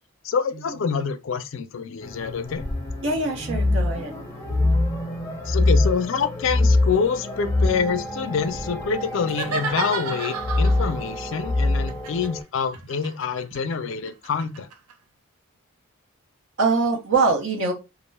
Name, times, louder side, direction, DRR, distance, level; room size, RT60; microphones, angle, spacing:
voice 1, 0.2-2.6 5.4-14.7, left 6 dB, 60° left, 0.3 m, -26 dB
sound 1, 2.0-12.4, left 2 dB, 10° left, 0.5 m, -24 dB
voice 2, 3.0-4.1 4.5-4.6 16.6-17.7, right 3 dB, 60° right, 0.9 m, -23 dB
sound 2, 9.3-11.0 11.9-14.9, right 5 dB, 85° right, 0.4 m, -32 dB
2.4 x 2.1 x 3.1 m
head